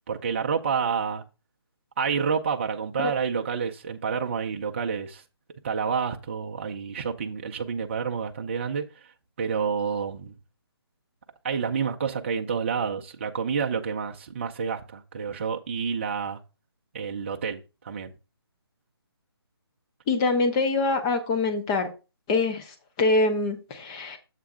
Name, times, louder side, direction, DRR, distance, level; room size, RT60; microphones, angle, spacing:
voice 1, 0.1-1.2 2.0-5.2 5.6-8.9 9.4-10.4 11.4-16.4 16.9-18.1, right 6 dB, 30° right, 0.6 m, -29 dB
voice 2, 20.1-21.9 22.3-24.2, left 3 dB, 15° left, 0.7 m, -24 dB
7.5 x 3.4 x 6.1 m
hypercardioid pair, 165°, 13 cm